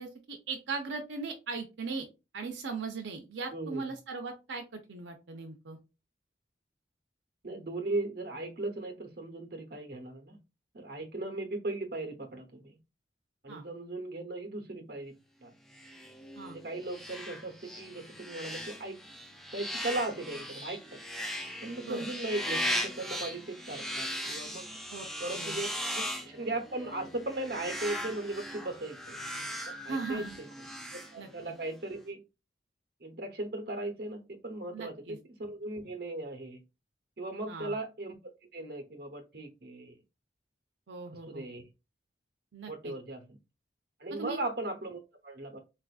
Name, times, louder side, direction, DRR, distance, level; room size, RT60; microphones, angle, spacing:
voice 1, 0.0-2.1 2.3-5.8 13.5-13.6 16.4-16.6 21.8-22.1 24.9-25.6 29.9-30.4 31.2-31.5 34.7-35.2 37.5-37.8 40.9-41.4 42.5-42.9 44.2-44.4, right 4 dB, 90° right, 4 dB, 0.6 m, -39 dB
voice 2, 3.5-3.9 7.4-10.4 10.7-12.8 13.4-15.1 15.4-15.5 16.5-19.0 19.5-21.0 21.6-24.7 25.2-25.7 25.9-29.2 29.8-30.5 31.1-32.2 33.0-36.6 37.2-38.1 38.5-40.0 41.3-41.6 42.7-43.4 44.0-45.6, right 2 dB, 55° right, 5 dB, 0.8 m, -37 dB
sound 1, 15.7-31.7, equal, ahead, 0.4 m, -38 dB
4.1 x 2.4 x 2.3 m, 0.27 s
head